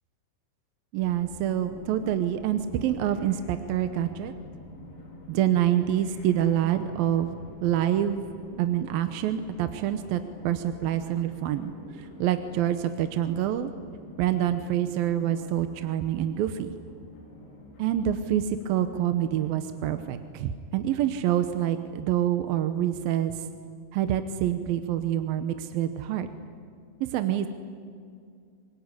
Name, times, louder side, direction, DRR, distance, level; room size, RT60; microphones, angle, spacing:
voice 1, 0.9-4.3 5.3-7.3 7.6-8.2 8.6-11.7 12.2-13.7 14.2-16.7 17.8-23.3 23.9-26.3 27.1-27.5, right 11 dB, 75° right, 9 dB, 2.6 m, -26 dB
sound 1, 1.0-20.2, left 2 dB, 70° left, 5.9 m, -48 dB
25.5 x 22.0 x 9.9 m, 2.3 s
omnidirectional pair, 4.6 m